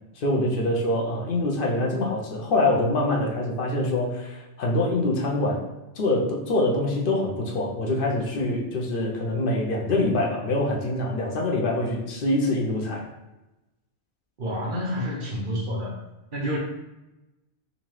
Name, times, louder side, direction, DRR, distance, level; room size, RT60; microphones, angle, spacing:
voice 1, 0.2-5.6 6.0-13.1, left 2 dB, 60° left, -1 dB, 0.8 m, -25 dB
voice 2, 14.4-16.0 16.3-16.6, equal, 55° right, -2 dB, 0.8 m, -29 dB
3.7 x 2.7 x 3.1 m, 1.0 s
omnidirectional pair, 1.1 m